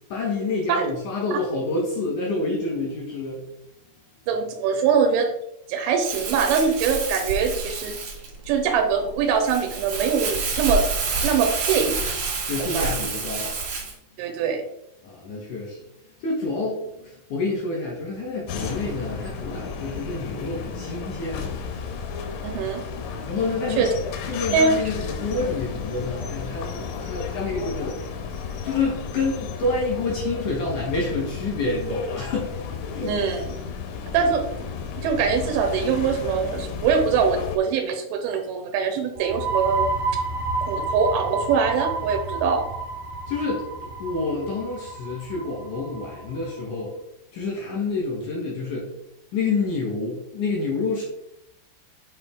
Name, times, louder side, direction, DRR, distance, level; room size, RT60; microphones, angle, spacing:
voice 1, 0.1-3.4 12.4-13.5 15.0-15.8 16.2-21.5 23.3-23.9 24.3-28.2 28.6-32.6 32.9-33.2 34.1-34.3 43.3-46.9 47.3-48.9 49.3-51.0, left 3 dB, 75° left, -1 dB, 1.9 m, -28 dB
voice 2, 4.3-5.3 5.7-8.0 8.5-10.8 11.2-11.9 12.6-12.9 14.2-14.6 22.4-22.8 23.8-23.9 24.5-24.7 33.1-33.5 34.1-34.4 35.0-39.9 40.6-42.7, right 6 dB, 85° right, 4 dB, 3.1 m, -23 dB
Crumpling crinkling, 6.0-13.9, right 3 dB, 60° right, 1.8 m, -28 dB
sound 1, 18.5-37.6, left 6 dB, 90° left, 3.3 m, -33 dB
sound 2, 39.1-46.6, right 3 dB, 40° right, 1.2 m, -30 dB
8.6 x 4.7 x 3.6 m, 0.81 s
omnidirectional pair, 5.4 m